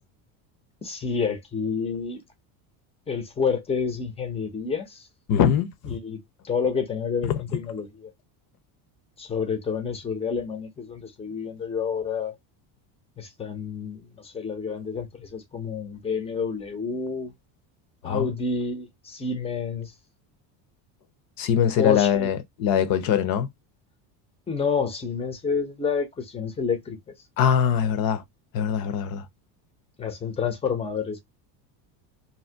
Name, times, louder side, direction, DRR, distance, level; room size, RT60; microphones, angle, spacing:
voice 1, 0.8-2.2 3.1-5.1 5.8-8.1 9.2-12.3 13.2-17.3 18.0-19.9 21.8-22.3 24.5-27.0 30.0-31.2, left 5 dB, 15° left, 0.6 m, -29 dB
voice 2, 5.3-6.0 7.3-7.4 18.0-18.3 21.4-23.5 27.4-28.2 28.5-29.2, left 8 dB, 50° left, 0.7 m, -22 dB
2.8 x 2.1 x 3.3 m
cardioid pair, 130°, 46 cm